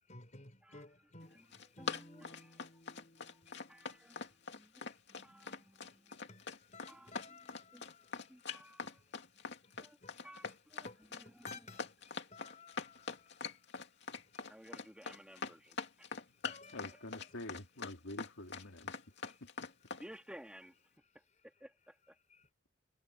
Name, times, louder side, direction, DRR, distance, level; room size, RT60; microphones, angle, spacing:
voice 1, 0.1-4.5 5.8-8.8 9.1-10.6 10.8-13.8 14.1-14.5 16.4-17.1 22.3-22.5, left 3 dB, 35° left, 4.2 m, -57 dB
Run, 1.3-20.0, left 5 dB, 60° left, 2.6 m, -43 dB
voice 2, 1.8-2.8 3.1-6.2 6.9-8.0 8.3-9.0 9.8-10.0 10.2-11.8 14.5-16.1 20.0-22.2, equal, 5° right, 2.8 m, -57 dB
voice 3, 16.7-18.9 19.4-19.7, left 1 dB, 85° left, 3.0 m, -47 dB
head